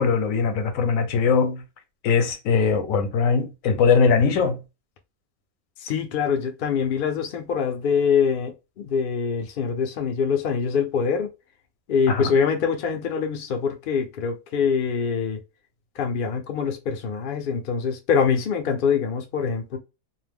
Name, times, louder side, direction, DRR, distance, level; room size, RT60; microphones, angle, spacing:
voice 1, 0.0-1.6 2.0-4.6 12.1-12.3, left 5 dB, 75° left, 1.0 m, -21 dB
voice 2, 5.8-11.3 11.9-15.4 16.0-19.8, left 6 dB, 60° left, 0.6 m, -24 dB
2.5 x 2.1 x 3.4 m
omnidirectional pair, 1.5 m